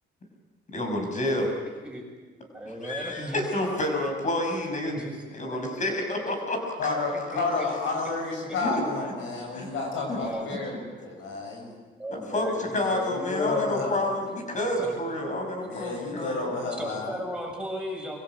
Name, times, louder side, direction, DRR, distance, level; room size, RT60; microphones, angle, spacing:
voice 1, 0.7-1.5 2.6-4.9 5.3-6.9 8.6-8.7 9.5-9.7 10.1-10.2 12.1-16.5, left 1 dB, 40° left, 3 dB, 6.4 m, -29 dB
voice 2, 2.5-3.4 4.9-5.2 7.3-7.4 10.2-10.6 12.0-12.8 14.8-15.0 16.8-18.2, equal, 5° right, -1 dB, 7.5 m, -35 dB
voice 3, 6.8-11.7 12.8-14.0 15.6-17.1, left 3 dB, 80° left, 1 dB, 7.3 m, -31 dB
25.5 x 16.0 x 8.2 m, 1.4 s
cardioid pair, 90°, 20 cm